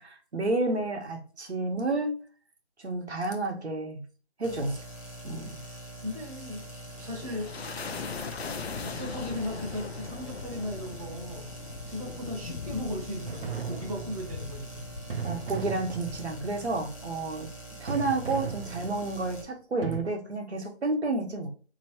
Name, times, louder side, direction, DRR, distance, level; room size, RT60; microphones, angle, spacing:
voice 1, 0.0-2.1 2.8-4.0 4.4-4.8 5.2-5.6 15.2-17.5 17.8-21.5, right 2 dB, 70° right, 2 dB, 1.1 m, -30 dB
sound 1, 4.4-19.4, equal, 30° left, 0.7 m, -44 dB
voice 2, 5.4-5.7 6.0-6.6 7.0-8.1 8.8-11.5 11.8-14.9, left 1 dB, 30° right, -3 dB, 0.8 m, -37 dB
sound 2, 6.9-17.4, left 5 dB, 65° left, 0.5 m, -41 dB
sound 3, 13.3-14.5 15.1-16.5 17.9-19.3 19.8-20.0, right 6 dB, 55° right, 0.6 m, -36 dB
4.2 x 3.0 x 2.9 m, 0.40 s
figure-of-eight pair, 175°, 34 cm